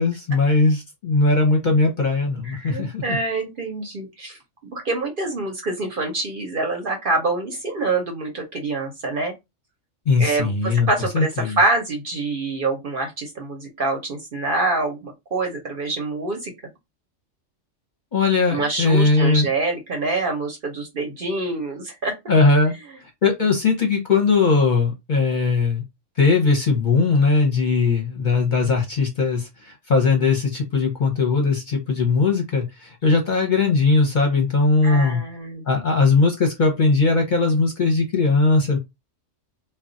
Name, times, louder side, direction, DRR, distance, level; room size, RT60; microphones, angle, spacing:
voice 1, 0.0-3.2 10.1-10.9 11.1-11.6 18.1-19.5 22.3-22.7 23.2-25.8 26.2-35.2 35.7-38.8, left 3 dB, 45° left, 0.8 m, -19 dB
voice 2, 2.4-9.3 10.2-16.5 18.5-22.1 34.8-35.6, right 3 dB, 50° right, 0.8 m, -26 dB
2.3 x 2.3 x 3.8 m
omnidirectional pair, 1.3 m